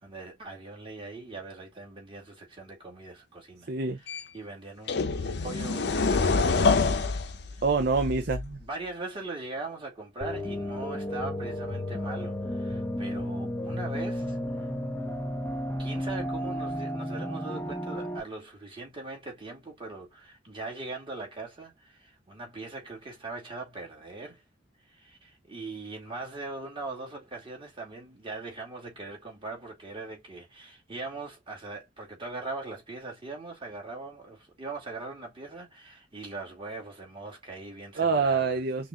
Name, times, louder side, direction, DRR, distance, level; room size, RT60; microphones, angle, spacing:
voice 1, 0.0-3.7 4.0-6.6 7.5-7.6 8.0-8.1 8.6-14.7 15.8-24.4 24.8-38.6, right 3 dB, 30° right, 2.3 m, -41 dB
voice 2, 3.7-4.0 7.6-8.6 38.0-38.9, right 4 dB, 55° right, 0.5 m, -26 dB
sound 1, 4.1-4.2 4.9-8.6, left 4 dB, 60° left, 0.6 m, -26 dB
sound 2, 10.2-18.2, equal, 15° left, 0.9 m, -33 dB
5.7 x 2.5 x 2.9 m
head